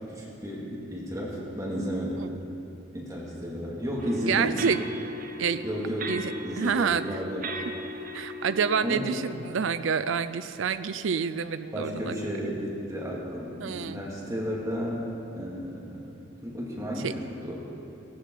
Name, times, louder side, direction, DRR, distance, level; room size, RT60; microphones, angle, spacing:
voice 1, 0.1-2.3 2.9-4.5 5.6-6.1 6.4-7.6 8.8-9.1 11.7-15.0 15.4-16.1 16.4-17.6, equal, 15° right, -5 dB, 2.5 m, -33 dB
sound 1, 4.0-9.4, right 1 dB, 40° right, 0.9 m, -37 dB
voice 2, 4.3-4.8 5.4-5.6 6.1-7.2 8.1-12.2 12.4-12.5 13.6-14.0 17.0-17.1, right 6 dB, 75° right, 12 dB, 0.5 m, -28 dB
16.5 x 16.5 x 4.7 m, 2.8 s
head